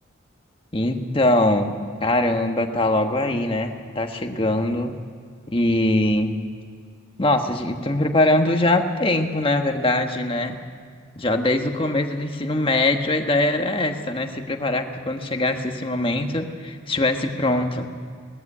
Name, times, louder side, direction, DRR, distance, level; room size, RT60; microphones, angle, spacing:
voice 1, 0.7-1.8 2.0-4.9 5.5-6.3 7.2-10.6 11.2-17.9, left 1 dB, 25° left, 4 dB, 1.3 m, -22 dB
18.5 x 14.0 x 9.9 m, 2.1 s
head